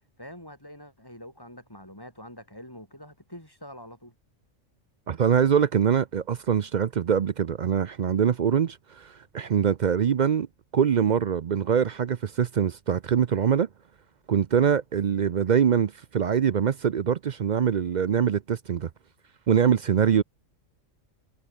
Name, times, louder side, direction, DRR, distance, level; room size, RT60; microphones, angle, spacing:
voice 1, 0.2-4.1, equal, 15° left, 5.8 m, -45 dB
voice 2, 5.1-10.5 10.7-13.7 14.3-18.9 19.5-20.2, right 8 dB, 55° right, 0.5 m, -23 dB
omnidirectional pair, 1.4 m